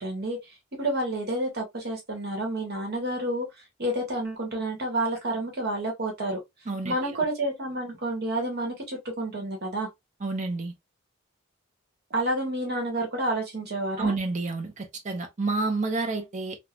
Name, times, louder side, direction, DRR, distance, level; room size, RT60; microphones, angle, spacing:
voice 1, 0.0-3.5 3.8-6.4 6.8-9.9 12.1-14.1, right 1 dB, 50° right, 1.0 m, -29 dB
voice 2, 6.7-7.2 10.2-10.7 14.0-16.6, right 3 dB, 35° right, 0.5 m, -29 dB
3.0 x 2.1 x 2.2 m
head